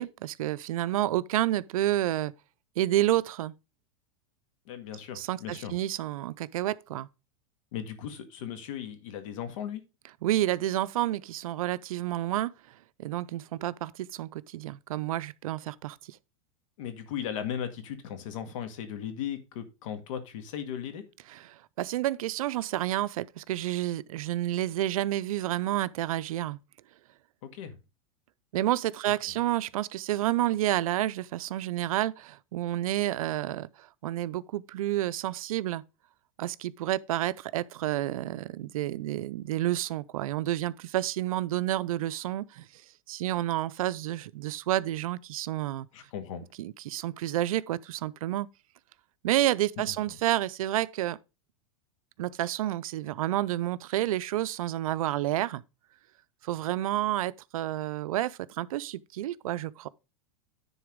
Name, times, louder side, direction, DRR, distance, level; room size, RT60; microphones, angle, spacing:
voice 1, 0.0-2.3 2.8-3.5 5.1-7.1 10.2-12.5 13.0-16.2 21.3-21.4 21.8-26.6 28.5-35.8 36.4-42.7 43.1-45.9 46.6-48.5 49.2-51.2 52.2-55.6 56.4-59.9, right 14 dB, 80° right, 0.5 m, -30 dB
voice 2, 4.7-5.8 7.7-9.8 16.8-21.1 27.4-27.8 29.2-29.4 45.9-46.4 49.8-50.2, left 9 dB, 65° left, 1.8 m, -37 dB
10.0 x 4.0 x 5.0 m
supercardioid pair, 140°, 18 cm